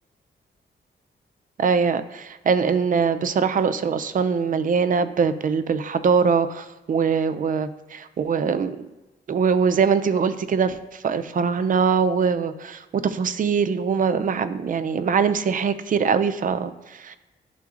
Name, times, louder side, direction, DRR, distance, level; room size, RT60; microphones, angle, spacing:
voice 1, 1.6-8.8 9.3-17.2, right 6 dB, 45° right, 12 dB, 0.4 m, -22 dB
10.5 x 3.8 x 2.5 m, 1.1 s
cardioid pair, 105°, 19 cm